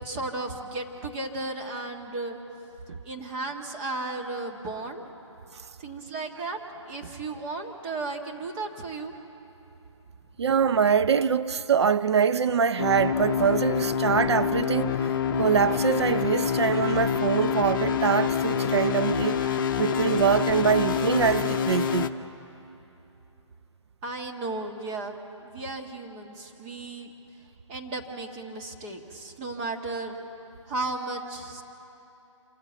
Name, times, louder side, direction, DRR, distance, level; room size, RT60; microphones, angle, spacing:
voice 1, 0.0-2.4 3.0-5.0 5.8-6.6 6.9-9.1 24.0-27.1 27.7-30.2 30.7-31.6, right 2 dB, 25° right, 1.6 m, -34 dB
voice 2, 10.4-22.1, right 7 dB, 60° right, 0.6 m, -24 dB
sound 1, 12.8-22.1, left 7 dB, 45° left, 0.8 m, -26 dB
26.5 x 14.5 x 8.2 m
hypercardioid pair, 150°, 16 cm